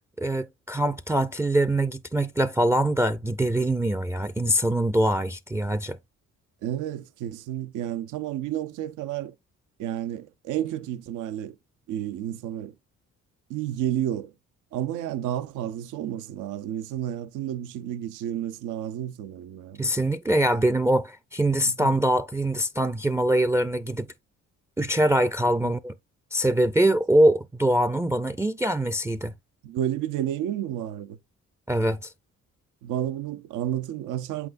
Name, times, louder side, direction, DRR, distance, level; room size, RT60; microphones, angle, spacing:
voice 1, 0.2-6.0 19.8-24.1 24.8-25.9 26.3-29.3 31.7-32.1, right 1 dB, 10° right, 0.4 m, -23 dB
voice 2, 6.6-9.3 9.8-11.6 11.9-12.7 13.5-14.3 14.7-19.8 21.7-21.9 25.6-25.8 29.6-31.2 32.8-34.5, right 11 dB, 90° right, 0.6 m, -31 dB
7.8 x 6.0 x 2.5 m
cardioid pair, 90°, 30 cm